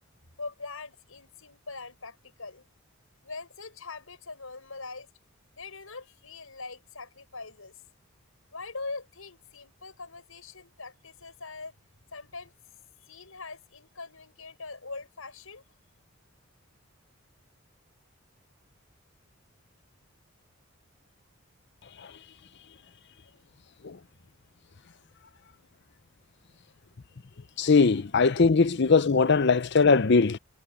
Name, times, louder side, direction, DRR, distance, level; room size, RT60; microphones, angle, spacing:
voice 1, 0.4-2.6 3.2-5.1 5.5-7.8 8.5-11.8 12.1-12.5 13.0-15.6 28.3-28.5, left 3 dB, 85° left, 5.6 m, -42 dB
voice 2, 27.6-30.4, left 4 dB, 55° left, 0.6 m, -21 dB
head